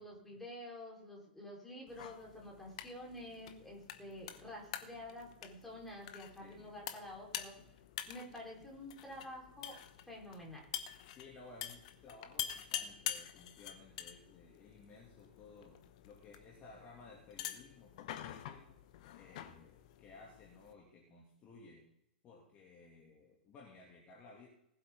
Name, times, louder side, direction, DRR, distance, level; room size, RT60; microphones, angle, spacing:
voice 1, 0.0-7.5 8.1-9.8 10.0-10.7, left 1 dB, 5° left, -3 dB, 4.4 m, -49 dB
sound 1, 1.9-20.7, left 11 dB, 45° left, 1.0 m, -47 dB
voice 2, 6.4-6.7 11.1-18.8 19.1-21.8 22.2-24.5, left 3 dB, 25° left, -2 dB, 2.7 m, -57 dB
19.5 x 8.0 x 3.9 m, 0.79 s
figure-of-eight pair, 105°, 5 cm